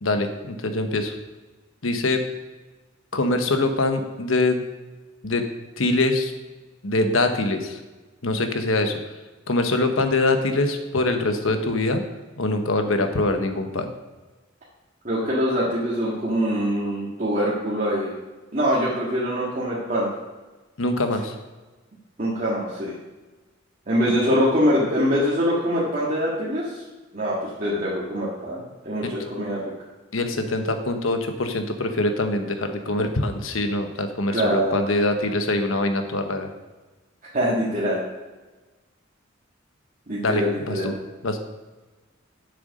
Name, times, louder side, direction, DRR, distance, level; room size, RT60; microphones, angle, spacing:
voice 1, 0.0-1.2 1.8-2.2 3.1-4.6 5.2-5.4 5.8-6.3 6.8-7.8 8.2-8.9 9.5-12.0 12.4-13.9 20.8-21.3 29.0-29.1 30.1-36.5 40.2-40.9 41.2-41.4, left 2 dB, 85° left, 6 dB, 1.1 m, -23 dB
voice 2, 15.0-18.1 18.5-20.1 22.2-23.0 23.9-26.8 27.1-29.7 34.3-35.0 37.3-38.0 40.1-40.9, equal, 40° right, -7 dB, 1.7 m, -24 dB
7.9 x 6.8 x 5.3 m, 1.2 s
head